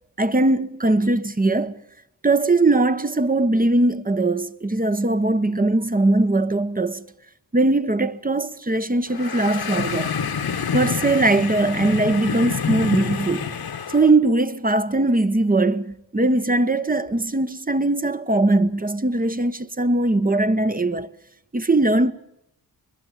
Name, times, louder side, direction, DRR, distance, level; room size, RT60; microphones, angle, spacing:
voice 1, 0.2-1.8 2.2-7.0 7.5-10.1 10.7-13.5 13.9-21.1 21.5-22.1, right 2 dB, 20° right, 1.1 m, -20 dB
sound 1, 9.1-14.1, left 6 dB, 85° left, 1.8 m, -27 dB
22.0 x 21.5 x 7.3 m
cardioid pair, 70°, 38 cm